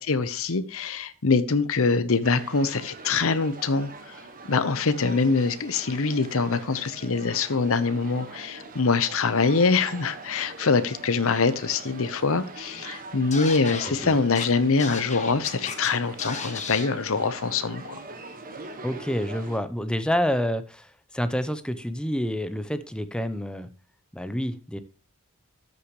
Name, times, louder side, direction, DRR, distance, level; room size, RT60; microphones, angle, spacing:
voice 1, 0.0-3.9 4.5-18.0, left 4 dB, 65° left, 0.9 m, -24 dB
sound 1, 2.2-19.6, right 3 dB, 40° right, 1.4 m, -42 dB
Scratching (performance technique), 13.3-13.9 14.4-14.5 14.8-15.9 16.2-16.9, left 5 dB, 35° left, 1.3 m, -34 dB
voice 2, 13.9-14.2 18.8-23.7 24.1-24.8, equal, 5° left, 0.7 m, -28 dB
13.0 x 6.7 x 3.1 m
head